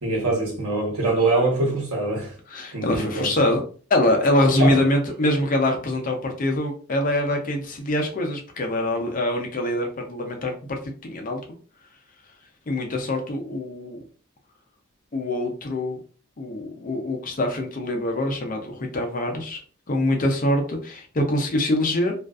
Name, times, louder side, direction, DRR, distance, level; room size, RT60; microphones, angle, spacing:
voice 1, 0.0-2.3 2.7-3.3 4.6-4.7, right 2 dB, 90° right, 1.0 m, -23 dB
voice 2, 2.5-3.6 3.9-11.4 12.7-14.0 15.1-16.0 16.4-19.6 19.9-22.1, left 1 dB, 40° left, 0.5 m, -24 dB
2.4 x 2.3 x 2.3 m
head